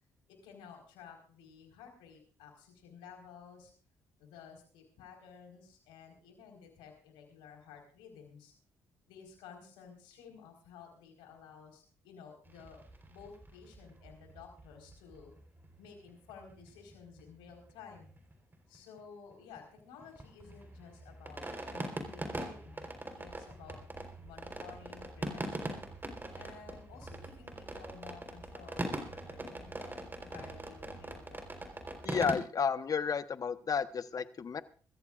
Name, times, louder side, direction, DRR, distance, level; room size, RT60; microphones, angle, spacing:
voice 1, 0.3-3.7 4.2-8.5 9.1-12.8 13.1-15.3 15.8-18.1 18.7-23.8 24.2-25.9 26.3-30.0 30.2-31.5, left 6 dB, 90° left, 2 dB, 4.5 m, -54 dB
sound 1, 12.5-16.9 17.2-17.3 17.5-17.7 18.0-19.0 19.3-32.4, right 1 dB, 25° right, 4.0 m, -42 dB
voice 2, 32.0-34.6, left 6 dB, 45° left, 12 dB, 1.1 m, -32 dB
24.5 x 14.5 x 2.5 m, 0.41 s
supercardioid pair, 60°, 8 cm